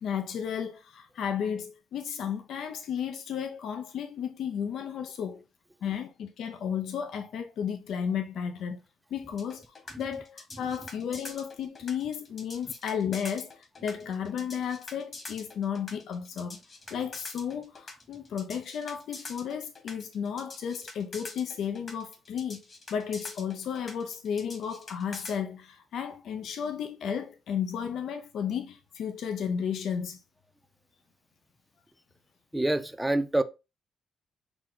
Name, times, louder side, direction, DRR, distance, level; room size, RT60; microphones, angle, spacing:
voice 1, 0.0-5.4 5.8-8.8 9.1-16.6 16.9-22.6 22.9-30.2, left 8 dB, 70° left, 0.5 m, -33 dB
sound 1, 9.4-25.4, left 3 dB, 40° left, 1.4 m, -44 dB
voice 2, 32.5-33.4, right 1 dB, 5° right, 0.5 m, -26 dB
5.9 x 2.2 x 3.7 m
cardioid pair, 90°, 0 cm